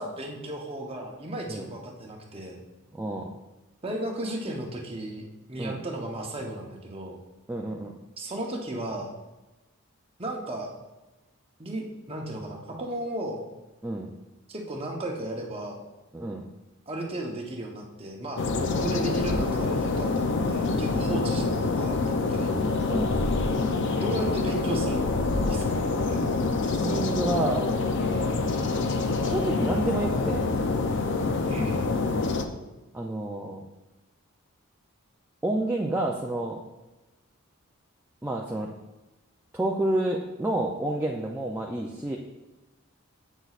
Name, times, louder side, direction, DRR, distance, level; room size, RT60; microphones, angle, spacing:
voice 1, 0.0-2.6 3.8-7.2 8.2-9.1 10.2-10.7 11.6-13.4 14.5-15.8 16.9-18.4 18.7-22.6 23.9-25.1 25.4-26.2 28.1-28.3 31.5-31.9, right 1 dB, 25° right, 0 dB, 0.8 m, -35 dB
voice 2, 2.9-3.3 5.6-5.8 7.5-7.9 13.8-14.1 16.1-16.4 21.1-21.2 22.9-23.2 26.7-27.8 29.2-30.6 32.9-33.6 35.4-36.6 38.2-38.7 39.5-42.2, right 1 dB, 10° right, -1 dB, 0.3 m, -29 dB
sound 1, 18.4-32.5, left 3 dB, 55° left, 0.5 m, -26 dB
8.0 x 6.0 x 2.4 m, 1.1 s
head